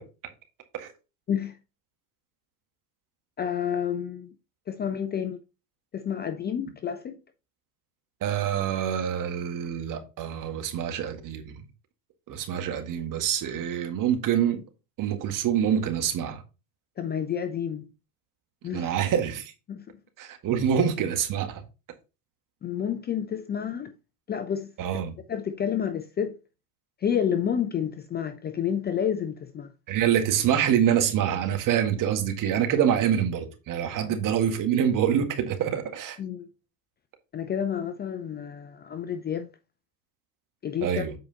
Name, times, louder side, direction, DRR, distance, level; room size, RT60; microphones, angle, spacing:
voice 1, 3.4-4.3 4.7-5.4 5.9-7.2 17.0-17.9 18.6-18.9 19.7-20.0 22.6-23.9 24.3-24.7 25.3-26.3 27.0-29.7 34.0-34.2 36.2-36.5 37.3-39.5 40.6-41.0, left 8 dB, 20° left, 0.6 m, -29 dB
voice 2, 8.2-11.6 12.3-14.6 15.0-16.4 18.7-19.5 20.2-21.6 24.8-25.1 29.9-36.2 40.8-41.1, right 9 dB, 40° right, 1.9 m, -26 dB
7.8 x 4.9 x 4.1 m
hypercardioid pair, 100°, 47 cm